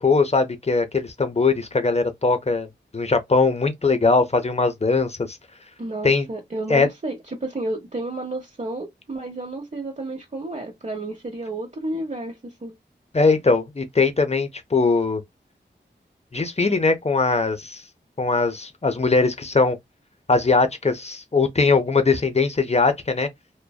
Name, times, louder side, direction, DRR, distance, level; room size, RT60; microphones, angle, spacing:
voice 1, 0.0-2.7 2.9-5.4 6.0-6.3 6.7-6.9 13.1-15.2 16.3-17.8 18.2-19.8 20.3-23.3, left 3 dB, 35° left, 0.6 m, -20 dB
voice 2, 5.8-12.8, right 2 dB, 40° right, 0.7 m, -31 dB
2.5 x 2.1 x 2.3 m
wide cardioid pair, 45°, 19 cm